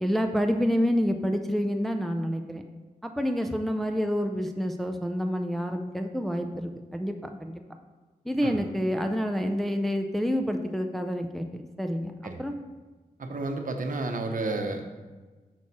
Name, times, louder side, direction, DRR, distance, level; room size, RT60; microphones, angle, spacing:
voice 1, 0.0-2.6 3.0-7.6 8.2-12.5, equal, ahead, 5 dB, 0.4 m, -28 dB
voice 2, 13.2-15.0, right 2 dB, 60° right, 4 dB, 0.9 m, -31 dB
6.3 x 5.9 x 4.2 m, 1.3 s
wide cardioid pair, 95°, 16 cm